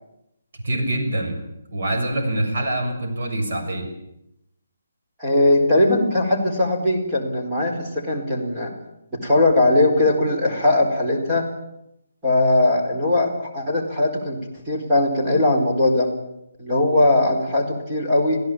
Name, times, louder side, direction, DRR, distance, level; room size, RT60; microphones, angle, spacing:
voice 1, 0.6-1.4 1.7-3.9, right 1 dB, 50° right, 4 dB, 7.0 m, -25 dB
voice 2, 5.2-8.7 9.1-11.5 12.2-14.4 14.7-16.1 16.6-18.4, left 2 dB, 10° right, -3 dB, 4.5 m, -19 dB
26.5 x 16.5 x 8.8 m, 0.82 s
hypercardioid pair, 175°, 0 cm